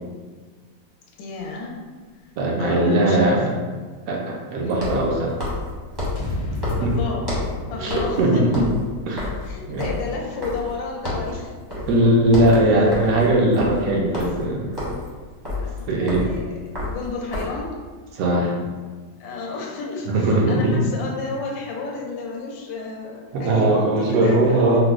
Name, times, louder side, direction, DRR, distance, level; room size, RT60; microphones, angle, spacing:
voice 1, 1.2-1.8 2.6-3.4 4.6-4.9 6.8-7.4 7.7-8.4 9.2-11.5 15.6-16.4 16.9-17.8 19.2-24.8, left 3 dB, 85° left, -1 dB, 1.3 m, -32 dB
voice 2, 2.4-3.5 4.1-5.4 6.8-6.9 7.8-8.6 9.1-9.3 9.7-9.8 11.9-14.7 15.9-16.3 18.2-18.5 20.1-20.9 23.3-24.8, right 1 dB, 75° right, -2 dB, 0.8 m, -19 dB
sound 1, 4.7-7.6 7.9-8.2 8.5-10.8 11.0-11.4 11.7-12.0 12.2-17.6, left 2 dB, 25° right, 0.5 m, -30 dB
sound 2, 6.2-10.4, left 1 dB, 65° left, 1.1 m, -33 dB
4.5 x 2.0 x 2.3 m, 1.4 s
omnidirectional pair, 2.0 m